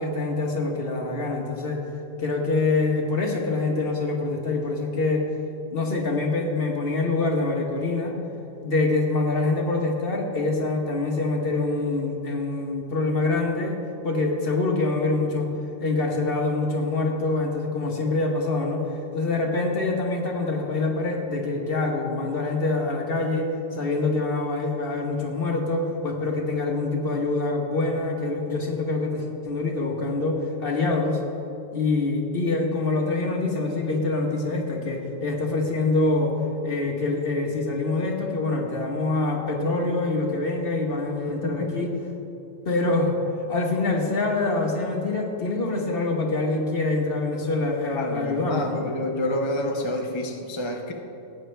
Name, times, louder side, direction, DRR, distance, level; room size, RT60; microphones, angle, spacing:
voice 1, 0.0-1.8 2.2-5.2 5.7-8.2 8.6-13.8 14.0-15.5 15.8-18.8 19.1-31.2 31.7-36.3 36.6-41.9 42.6-43.1 43.5-48.9, left 3 dB, 55° left, 1 dB, 1.5 m, -25 dB
voice 2, 41.4-41.8 48.0-50.9, left 1 dB, 30° left, 1 dB, 0.7 m, -28 dB
17.5 x 9.0 x 3.4 m, 2.8 s
omnidirectional pair, 1.2 m